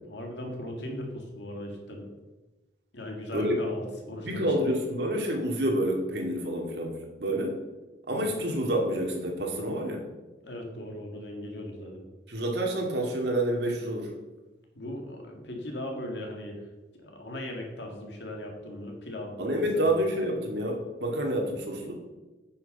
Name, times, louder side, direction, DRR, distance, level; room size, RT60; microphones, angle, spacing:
voice 1, 0.0-2.1 2.9-4.5 8.2-8.4 10.4-12.1 14.8-16.7 17.0-20.0, left 1 dB, 80° left, 1 dB, 2.2 m, -38 dB
voice 2, 4.2-6.9 7.2-7.5 8.1-10.0 12.3-14.1 19.4-22.0, right 1 dB, 75° right, 0 dB, 2.2 m, -28 dB
9.4 x 6.1 x 5.5 m, 1.1 s
head